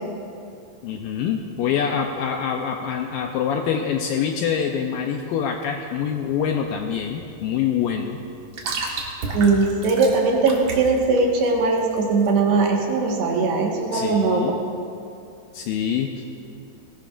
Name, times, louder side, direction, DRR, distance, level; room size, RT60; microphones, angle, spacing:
voice 1, 0.8-8.2 13.9-14.6 15.5-16.3, left 7 dB, 85° left, 3 dB, 2.1 m, -25 dB
sound 1, 6.0-12.7, right 3 dB, 60° right, 2.3 m, -33 dB
voice 2, 9.3-14.4, right 3 dB, 80° right, 0 dB, 3.6 m, -20 dB
20.5 x 17.0 x 2.5 m, 2.5 s
omnidirectional pair, 4.7 m